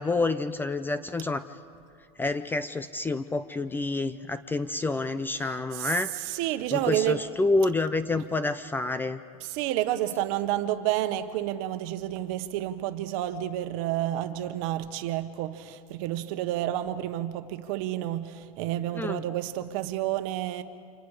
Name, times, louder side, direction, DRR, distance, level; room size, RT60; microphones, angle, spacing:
voice 1, 0.0-1.4 2.2-6.1 6.7-9.2 18.9-19.3, left 3 dB, 10° left, 0.5 m, -28 dB
voice 2, 5.4-7.2 9.4-20.6, right 13 dB, 60° right, 1.3 m, -30 dB
29.5 x 27.0 x 4.9 m
supercardioid pair, 145°, 20 cm